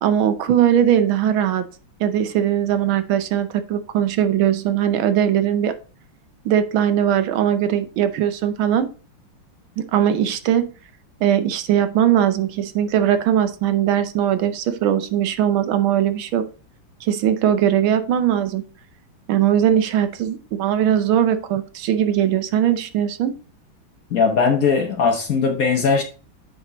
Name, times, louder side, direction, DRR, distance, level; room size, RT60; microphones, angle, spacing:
voice 1, 0.0-1.6 2.0-5.7 6.4-8.9 9.8-10.7 11.2-16.4 17.0-18.6 19.3-23.4, right 10 dB, 75° right, 1.5 m, -20 dB
voice 2, 24.1-26.0, left 5 dB, 55° left, 1.0 m, -19 dB
8.8 x 4.2 x 4.0 m
omnidirectional pair, 2.3 m